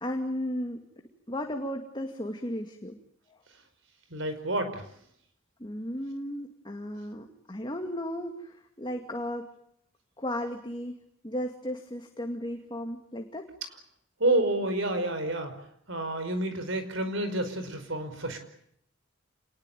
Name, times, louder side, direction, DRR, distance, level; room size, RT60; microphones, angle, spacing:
voice 1, 0.0-0.8 1.3-3.0 5.6-9.5 10.2-10.9 11.2-13.5, equal, 20° left, 4 dB, 2.2 m, -35 dB
voice 2, 4.1-4.8 14.2-15.5 15.9-18.4, right 1 dB, 65° right, 8 dB, 5.2 m, -29 dB
28.0 x 20.0 x 9.2 m, 0.71 s
head